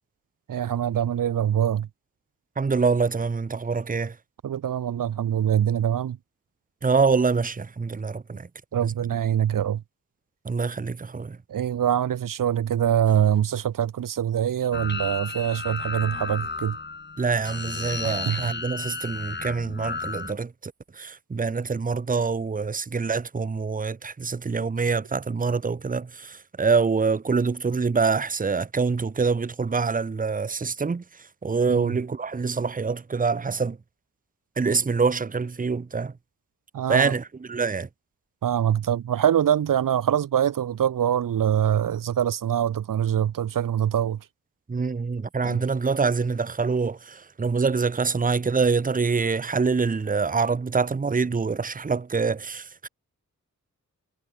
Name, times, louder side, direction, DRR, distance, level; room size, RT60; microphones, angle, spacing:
voice 1, 0.5-1.9 4.4-6.2 8.7-9.8 11.5-16.8 18.0-18.5 31.7-32.0 36.7-37.1 38.4-44.2 45.4-45.6, right 9 dB, 80° right, 0.9 m, -24 dB
voice 2, 2.6-4.1 6.8-8.5 8.8-8.9 10.4-11.4 17.2-31.0 31.4-33.8 34.6-36.1 36.9-37.9 44.7-52.9, right 4 dB, 25° right, 0.9 m, -25 dB
sound 1, 14.7-20.3, left 4 dB, 35° left, 2.4 m, -33 dB
wide cardioid pair, 130°, 32 cm